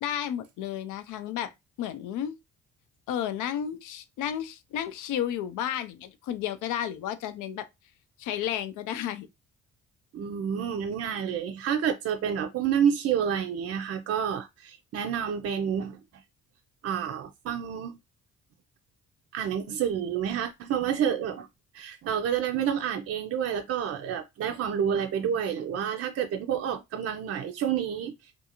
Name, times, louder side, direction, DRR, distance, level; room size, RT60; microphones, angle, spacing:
voice 1, 0.0-1.5 1.8-2.3 3.1-7.7 8.2-9.3, left 10 dB, 85° left, 0.5 m, -32 dB
voice 2, 10.1-16.0 16.8-18.0 19.3-21.5 21.7-28.1, right 8 dB, 50° right, 0.4 m, -29 dB
2.5 x 2.4 x 2.9 m
cardioid pair, 90°, 30 cm